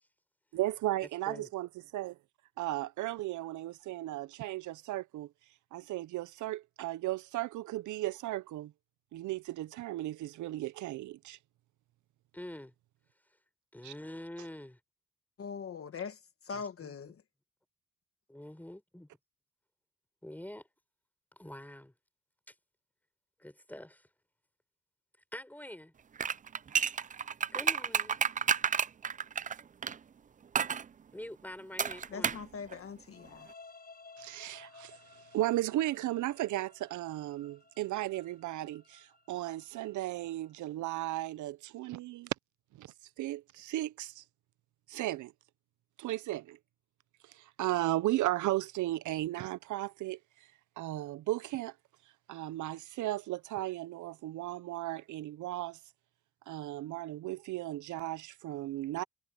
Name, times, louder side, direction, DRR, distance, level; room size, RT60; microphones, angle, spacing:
voice 1, 0.5-2.1 2.6-5.3 5.7-8.7 9.1-11.4 13.8-13.9 34.2-35.0 35.3-42.3 42.8-44.2 44.9-45.3 46.0-46.6 47.2-50.2 50.8-51.7 52.3-55.8 56.5-59.0, right 15 dB, 75° right, 0.6 m, -35 dB
voice 2, 12.3-12.7 13.7-14.8 16.5-16.9 18.3-19.1 20.2-20.7 21.3-21.9 22.5-22.6 23.4-24.1 25.3-25.9 27.5-28.2 31.1-32.4, left 1 dB, 5° left, 5.3 m, -46 dB
voice 3, 15.4-17.2 32.1-33.5, left 6 dB, 45° left, 1.5 m, -42 dB
sound 1, 26.2-30.0 30.5-30.8 31.8-32.5 32.7-32.8, right 7 dB, 25° right, 0.4 m, -30 dB
sound 2, 33.1-40.9, left 3 dB, 30° left, 6.5 m, -57 dB
cardioid pair, 90°, 30 cm